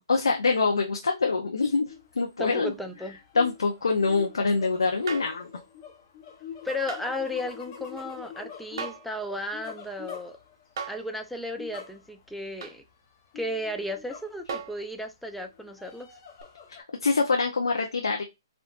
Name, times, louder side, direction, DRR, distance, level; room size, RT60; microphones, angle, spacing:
voice 1, 0.0-1.8 2.2-2.7 3.3-5.5 17.0-18.2, left 4 dB, 80° left, 0.6 m, -24 dB
sound 1, 1.9-2.2 2.5-10.8 11.6-12.3 12.6-12.7 13.3-14.8 15.4-16.8, left 7 dB, 30° left, 0.8 m, -45 dB
voice 2, 2.4-3.2 6.6-10.4 10.9-12.8 13.4-16.1, left 1 dB, ahead, 0.4 m, -34 dB
sound 2, 5.1-5.4 6.9-7.1 8.8-9.1 10.8-11.1 12.6-12.8 14.5-14.8 16.4-16.5, right 5 dB, 55° right, 0.7 m, -36 dB
3.6 x 2.4 x 2.4 m
hypercardioid pair, 140°, 2 cm